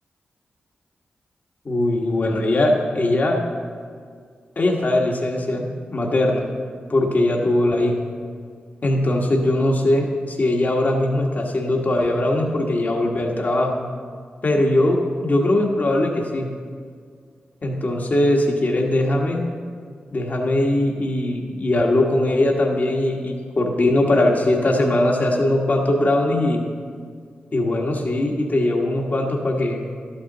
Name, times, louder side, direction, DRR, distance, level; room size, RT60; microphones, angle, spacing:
voice 1, 1.6-3.4 4.6-6.4 6.9-8.0 8.8-13.8 14.4-16.5 17.6-19.4 20.1-26.6 27.5-29.9, left 1 dB, 50° left, 0 dB, 1.4 m, -20 dB
12.0 x 8.4 x 3.9 m, 2.1 s
cardioid pair, 50°, 4 cm